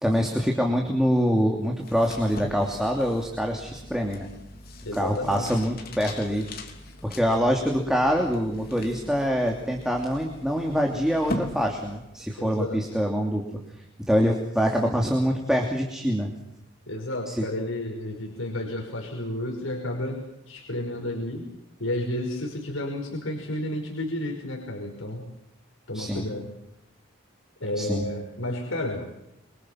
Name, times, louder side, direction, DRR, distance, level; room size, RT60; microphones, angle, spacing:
voice 1, 0.0-4.3 4.9-6.5 7.0-13.4 14.1-16.3 17.3-17.4 25.9-26.3 27.8-28.1, equal, 5° right, 1 dB, 2.9 m, -25 dB
sound 1, 1.8-12.3, left 1 dB, 45° left, 3.4 m, -40 dB
voice 2, 4.8-5.5 12.4-12.8 16.9-21.5 21.8-25.2 25.9-26.5 27.6-29.0, left 1 dB, 75° left, 1 dB, 5.5 m, -31 dB
28.0 x 25.0 x 5.9 m, 0.85 s
head